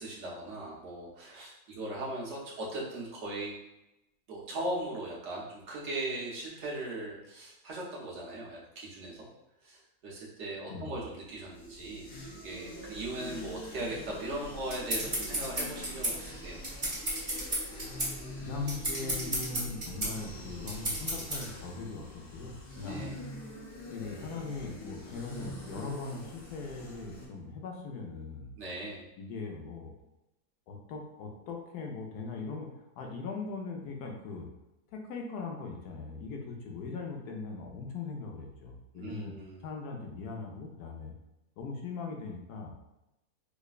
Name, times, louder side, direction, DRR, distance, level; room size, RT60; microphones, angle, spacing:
voice 1, 0.0-3.6 4.3-9.3 9.6-16.6 22.9-23.2 28.6-29.0 38.9-39.6, right 1 dB, 50° right, -4 dB, 1.1 m, -39 dB
sound 1, 11.3-27.3, left 1 dB, 50° left, 0.7 m, -45 dB
sound 2, 14.3-21.5, right 1 dB, 30° right, 1.0 m, -34 dB
voice 2, 18.4-23.1 23.9-28.5 29.2-29.9 30.7-32.7 33.0-34.5 34.9-39.3 39.6-41.1 41.6-42.7, left 4 dB, 85° left, 1 dB, 1.2 m, -40 dB
4.9 x 2.2 x 2.3 m, 0.90 s
omnidirectional pair, 1.6 m